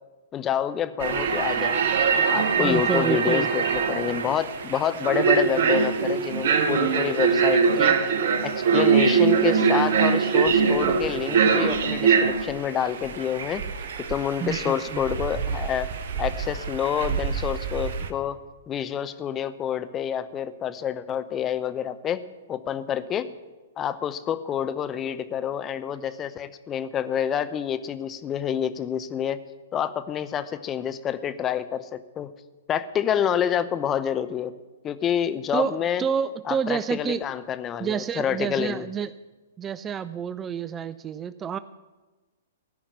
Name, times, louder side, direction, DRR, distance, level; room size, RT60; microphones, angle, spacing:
voice 1, 0.3-1.9 2.3-8.0 8.4-13.7 14.1-15.9 16.2-18.4 18.7-22.2 22.5-23.3 23.8-29.4 29.7-32.3 32.7-34.5 34.8-36.0 36.5-38.9, left 9 dB, 25° left, 12 dB, 0.7 m, -28 dB
sound 1, 1.0-18.1, right 6 dB, 60° right, 1.1 m, -23 dB
voice 2, 2.6-3.5 14.4-15.0 35.5-37.3 37.8-39.1 39.6-41.6, right 7 dB, 20° right, 15 dB, 0.4 m, -28 dB
15.0 x 5.7 x 9.5 m, 1.2 s
figure-of-eight pair, 115°, 0 cm